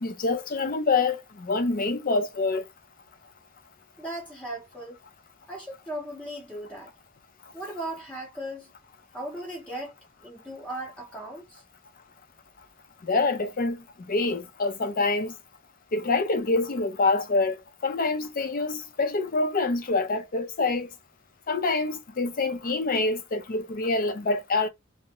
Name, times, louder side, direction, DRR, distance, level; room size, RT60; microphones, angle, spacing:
voice 1, 0.0-2.6 13.0-13.8 14.1-15.3 15.9-17.6 17.8-20.9 21.5-24.7, left 3 dB, 45° left, 0.5 m, -26 dB
voice 2, 4.0-5.0 5.5-6.9 7.5-8.7 9.1-9.9 10.2-11.6, right 1 dB, 5° left, 0.6 m, -37 dB
2.5 x 2.1 x 2.9 m
head